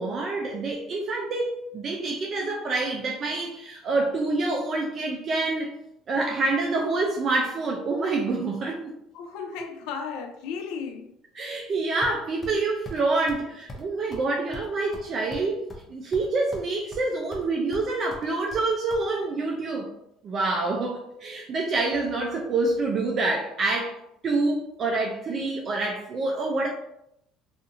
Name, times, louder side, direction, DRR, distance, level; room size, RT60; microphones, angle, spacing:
voice 1, 0.0-5.7 6.1-8.9 11.4-15.6 15.9-19.9 20.2-24.0 24.2-26.7, right 3 dB, 45° right, 0 dB, 0.4 m, -27 dB
voice 2, 9.1-11.1, left 6 dB, 75° left, 5 dB, 0.3 m, -35 dB
sound 1, 12.0-12.6 12.8-13.0 13.3-13.4 13.7-13.8 14.1-14.2 14.5-15.8 16.1-16.7 16.9-17.5 17.7-19.0, equal, 30° left, 0.7 m, -41 dB
2.6 x 2.5 x 2.5 m, 0.78 s
supercardioid pair, 90°, 0 cm